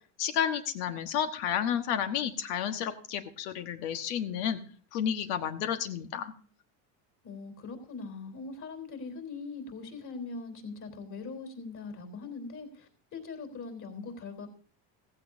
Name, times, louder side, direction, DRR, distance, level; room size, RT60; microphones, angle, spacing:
voice 1, 0.2-4.6 4.9-6.3, left 9 dB, 85° left, 7 dB, 1.5 m, -31 dB
voice 2, 7.2-14.5, left 4 dB, 40° left, 5 dB, 3.7 m, -41 dB
15.5 x 15.5 x 2.7 m, 0.42 s
supercardioid pair, 110°, 44 cm